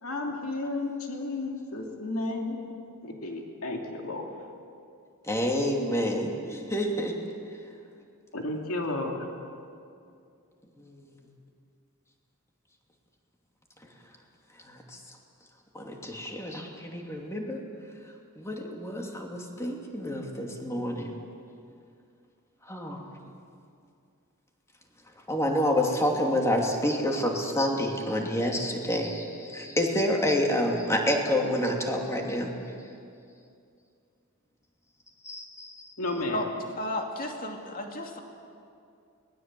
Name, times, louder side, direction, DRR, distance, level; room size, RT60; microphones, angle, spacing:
voice 1, 0.0-4.3 8.3-9.3 36.0-36.4, left 2 dB, 70° left, 1 dB, 2.7 m, -33 dB
voice 2, 5.2-7.1 10.8-11.2 13.8-13.9 14.6-15.2 15.7-17.6 18.4-21.1 22.6-23.1 25.3-32.6 35.2-35.9, left 1 dB, 15° left, 0 dB, 2.7 m, -28 dB
voice 3, 36.8-38.2, left 1 dB, 40° left, 2 dB, 2.6 m, -33 dB
24.5 x 20.0 x 7.7 m, 2.4 s
head